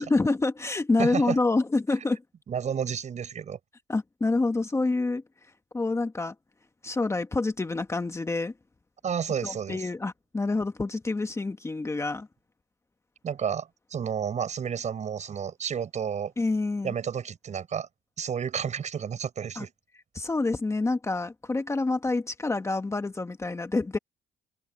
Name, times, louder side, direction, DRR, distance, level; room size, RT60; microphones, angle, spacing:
voice 1, 0.0-2.2 3.9-5.2 5.7-6.3 6.8-8.5 9.4-12.3 16.4-16.9 19.5-19.7 20.1-24.0, left 3 dB, 15° left, 1.4 m, -27 dB
voice 2, 1.0-1.4 2.5-3.6 9.0-9.9 13.2-16.3 16.8-17.9 18.2-19.7, right 7 dB, 45° right, 7.7 m, -31 dB
cardioid pair, 110°, 17 cm